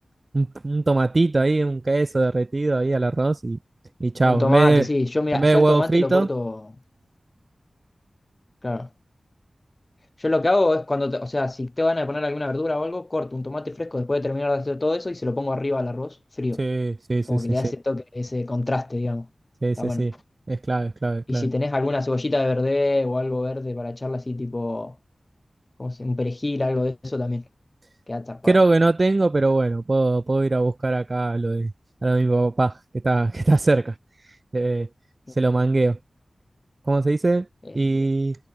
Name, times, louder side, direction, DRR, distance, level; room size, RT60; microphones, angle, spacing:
voice 1, 0.3-3.6 4.0-4.9 5.3-6.3 16.6-17.7 19.6-20.1 20.5-21.5 28.5-31.7 32.0-32.7 33.0-33.9 34.5-34.9 35.4-36.0 36.9-37.5 37.7-38.4, right 2 dB, 40° right, 0.8 m, -21 dB
voice 2, 4.2-6.6 8.6-8.9 10.2-16.6 17.3-19.3 19.8-20.1 21.3-25.0 25.8-27.4 28.1-28.6 37.7-38.0, left 2 dB, 35° left, 3.9 m, -25 dB
wide cardioid pair, 80°, 0 cm